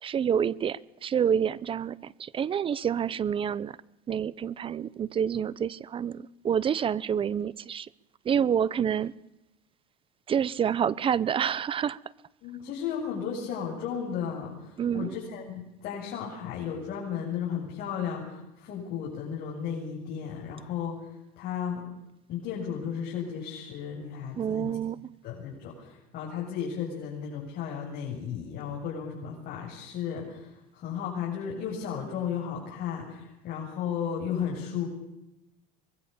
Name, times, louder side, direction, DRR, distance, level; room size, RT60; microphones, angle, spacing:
voice 1, 0.0-3.8 4.1-7.9 8.2-9.1 10.3-12.0 14.8-15.1 24.4-25.1, right 8 dB, 30° right, 0.8 m, -28 dB
voice 2, 12.4-20.9 21.4-21.8 22.3-24.7 25.2-34.9, left 7 dB, 50° left, 7.7 m, -34 dB
24.5 x 22.0 x 7.0 m
supercardioid pair, 125°, 19 cm